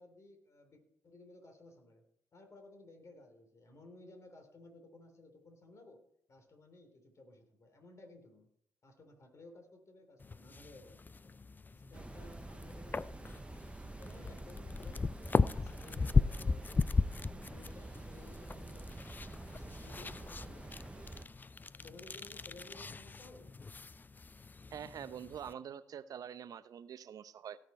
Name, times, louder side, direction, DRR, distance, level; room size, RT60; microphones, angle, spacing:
voice 1, 0.0-2.0 2.3-8.5 8.8-11.4 11.7-13.6 14.0-16.8 17.2-21.3 21.8-23.5, left 2 dB, 45° left, 5 dB, 3.3 m, -57 dB
sound 1, 10.2-25.5, left 4 dB, 25° left, 0.5 m, -37 dB
sound 2, 11.9-21.2, right 2 dB, 15° right, 0.8 m, -48 dB
voice 2, 24.7-27.6, right 8 dB, 60° right, 14 dB, 0.7 m, -45 dB
17.0 x 6.6 x 4.4 m, 0.69 s
hypercardioid pair, 45°, 7 cm